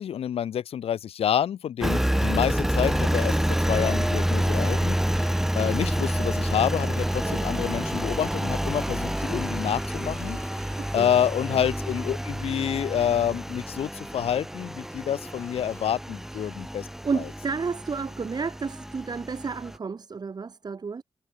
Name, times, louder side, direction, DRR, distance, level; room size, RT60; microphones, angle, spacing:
voice 1, 0.0-3.3 3.7-5.0 5.6-10.4 10.9-16.9, left 9 dB, 75° left, 0.7 m, -28 dB
Engine, 1.8-19.8, equal, 5° right, 0.9 m, -28 dB
sound 1, 4.2-12.5 14.9-16.0, left 3 dB, 25° left, 4.9 m, -52 dB
voice 2, 10.8-11.1 11.5-11.6 16.3-16.6 17.0-21.0, right 5 dB, 45° right, 1.5 m, -32 dB
cardioid pair, 75°, 10 cm